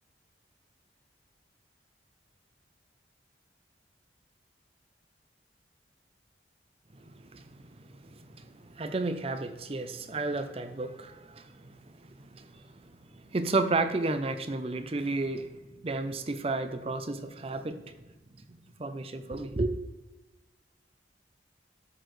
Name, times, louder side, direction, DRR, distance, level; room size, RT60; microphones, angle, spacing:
voice 1, 7.0-7.5 7.8-12.8 13.1-18.0 18.8-19.8, right 3 dB, 30° right, 0.5 m, -33 dB
12.5 x 6.4 x 3.2 m
head